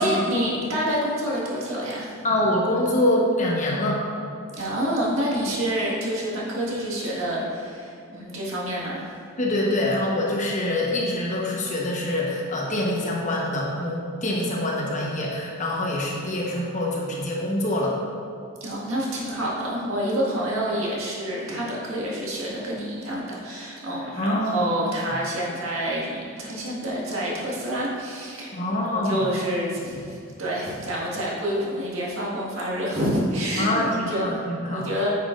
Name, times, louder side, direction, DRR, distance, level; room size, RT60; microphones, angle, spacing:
voice 1, 0.0-2.1 4.6-9.0 18.6-35.1, equal, 70° right, -5 dB, 1.8 m, -28 dB
voice 2, 2.2-4.0 9.4-18.0 24.2-24.7 28.5-29.2 33.6-34.9, left 1 dB, 35° left, -3 dB, 1.1 m, -25 dB
9.0 x 7.4 x 2.6 m, 2.5 s
head